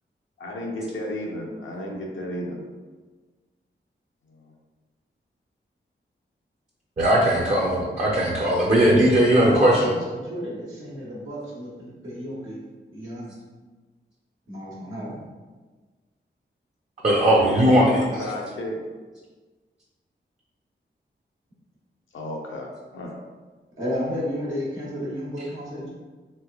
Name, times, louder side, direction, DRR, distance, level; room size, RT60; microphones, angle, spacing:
voice 1, 0.4-2.7 4.3-4.5 17.2-18.8 22.1-23.2, left 1 dB, 85° left, -1 dB, 0.6 m, -33 dB
voice 2, 7.0-9.9 17.0-18.0, right 1 dB, 35° right, -4 dB, 0.5 m, -18 dB
voice 3, 9.4-12.6 12.9-13.3 14.5-15.2 23.8-25.9, equal, 85° right, -7 dB, 1.1 m, -32 dB
3.3 x 3.1 x 2.3 m, 1.3 s
wide cardioid pair, 105°, 20 cm